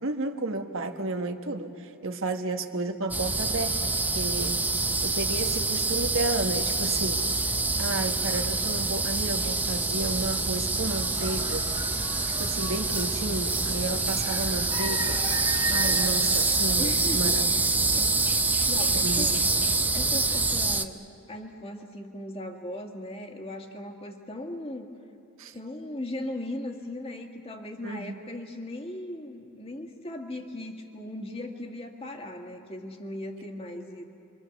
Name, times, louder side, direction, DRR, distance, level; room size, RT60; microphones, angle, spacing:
voice 1, 0.0-4.6 5.0-7.4 7.8-11.7 12.3-17.4 17.9-18.0 18.9-19.6 25.4-25.5 27.8-28.2, right 2 dB, 65° right, 6 dB, 1.4 m, -32 dB
sound 1, 3.1-20.9, right 3 dB, 10° right, 0.5 m, -26 dB
sound 2, 9.4-17.4, right 3 dB, 25° right, 2.0 m, -37 dB
voice 2, 16.8-18.1 18.4-19.4 19.9-24.9 25.5-34.0, left 1 dB, 25° left, 3 dB, 1.9 m, -38 dB
28.5 x 24.5 x 7.1 m, 2.6 s
head